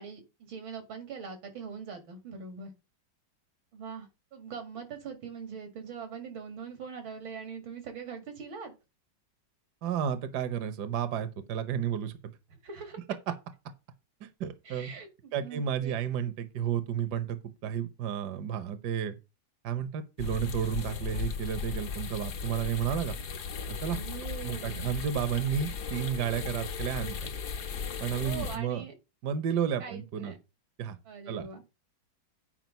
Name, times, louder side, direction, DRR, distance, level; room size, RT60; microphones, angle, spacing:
voice 1, 0.0-2.7 3.7-8.7 12.5-13.0 14.6-16.0 23.8-25.0 28.2-28.9 29.8-30.4 31.1-31.6, right 6 dB, 85° right, 2.8 m, -42 dB
voice 2, 9.8-12.1 14.4-14.9 15.3-17.4 17.6-19.1 19.6-23.2 23.7-24.0 24.4-27.3 28.0-28.8 29.2-30.3 30.8-31.0 31.3-31.5, right 8 dB, 65° right, 1.4 m, -32 dB
sound 1, 20.2-28.6, left 5 dB, 60° left, 1.5 m, -36 dB
9.2 x 5.1 x 5.3 m
omnidirectional pair, 2.1 m